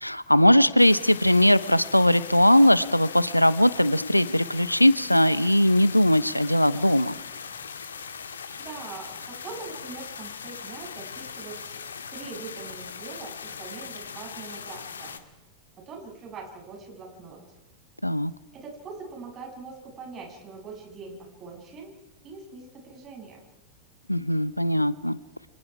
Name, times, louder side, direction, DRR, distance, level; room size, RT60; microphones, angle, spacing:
voice 1, 0.0-7.1 18.0-18.3 24.1-25.2, left 1 dB, 90° left, 18 dB, 0.8 m, -20 dB
sound 1, 0.8-15.2, left 6 dB, 70° left, 1.8 m, -40 dB
voice 2, 8.6-11.8 12.1-15.2 15.7-17.4 18.5-21.9 22.2-23.4, right 4 dB, 30° right, 1 dB, 7.5 m, -42 dB
29.0 x 25.0 x 4.9 m, 1.0 s
figure-of-eight pair, 90°, 0 cm